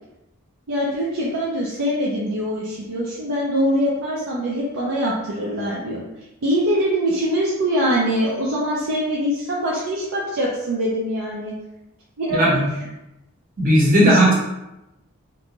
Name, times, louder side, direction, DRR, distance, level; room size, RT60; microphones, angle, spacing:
voice 1, 0.7-6.0 6.4-11.5 12.2-12.8 14.0-14.2, equal, 75° right, -5 dB, 0.5 m, -23 dB
voice 2, 13.6-14.3, right 1 dB, 40° right, -4 dB, 0.8 m, -15 dB
2.6 x 2.2 x 2.9 m, 0.92 s
head